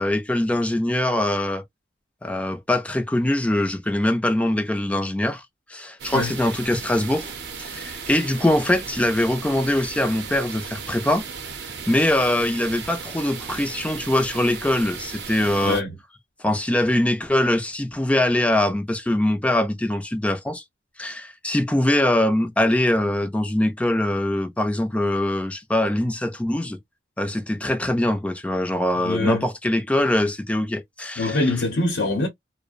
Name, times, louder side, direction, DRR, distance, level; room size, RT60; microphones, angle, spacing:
voice 1, 0.0-1.6 2.2-5.4 5.7-7.3 7.6-11.2 11.9-15.8 16.4-20.6 21.0-26.8 27.2-31.4, left 1 dB, 10° left, 0.4 m, -22 dB
sound 1, 6.0-15.8, right 6 dB, 65° right, 0.6 m, -36 dB
voice 2, 15.6-16.0 28.9-29.4 31.2-32.3, left 2 dB, 80° left, 0.8 m, -24 dB
2.5 x 2.1 x 2.4 m
head